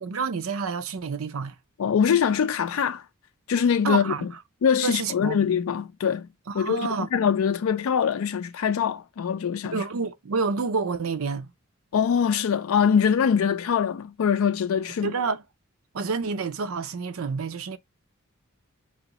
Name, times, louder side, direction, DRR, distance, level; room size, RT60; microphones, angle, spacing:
voice 1, 0.0-1.5 3.8-4.3 4.8-5.4 6.5-7.1 9.7-11.5 15.0-15.4 15.9-17.8, right 5 dB, 80° right, 0.5 m, -28 dB
voice 2, 1.8-3.0 3.5-4.3 4.6-6.3 6.5-9.8 11.9-15.1, left 7 dB, 80° left, 0.4 m, -23 dB
4.9 x 3.0 x 2.7 m
head